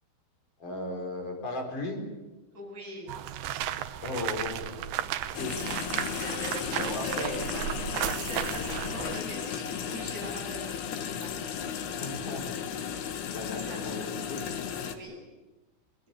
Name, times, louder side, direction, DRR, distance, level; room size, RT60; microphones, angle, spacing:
voice 1, 0.6-2.0 4.0-4.7 5.0-5.1 5.4-5.7 6.6-7.7 12.0-12.6 13.3-14.4, left 2 dB, 55° left, 2 dB, 6.3 m, -36 dB
voice 2, 2.5-3.1 4.6-5.4 6.2-7.3 8.1-12.2 13.3-13.9 14.8-15.2, right 1 dB, 20° right, -2 dB, 8.2 m, -43 dB
sound 1, 3.1-9.2, right 11 dB, 85° right, 3.0 m, -34 dB
sound 2, 5.3-15.0, left 8 dB, 80° left, 3.6 m, -35 dB
25.5 x 22.0 x 8.5 m, 1.1 s
omnidirectional pair, 4.4 m